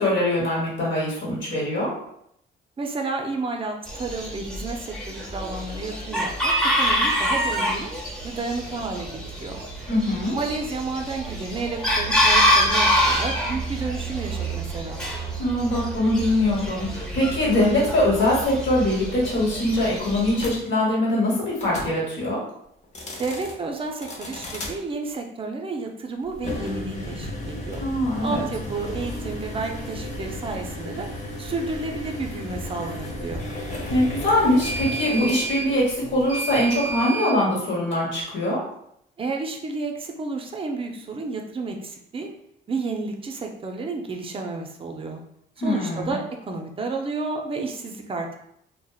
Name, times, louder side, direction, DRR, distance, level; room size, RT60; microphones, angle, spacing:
voice 1, 0.0-1.9 9.9-10.4 15.4-22.4 27.8-28.4 33.9-38.6 45.6-46.1, left 1 dB, 70° left, -5 dB, 1.2 m, -22 dB
voice 2, 2.8-7.9 8.2-9.6 10.3-15.0 23.2-27.8 28.2-31.1 31.4-33.4 39.2-42.3 42.7-45.2 45.6-48.4, right 3 dB, 30° right, 3 dB, 0.4 m, -31 dB
Chicken rooster, 3.9-20.4, equal, 5° left, 0.8 m, -26 dB
sound 1, 20.4-20.5 21.6-21.9 22.8-23.5 24.0-24.7 26.3-37.4, equal, 35° left, 0.6 m, -33 dB
2.7 x 2.1 x 2.3 m, 0.74 s
cardioid pair, 90°, 20 cm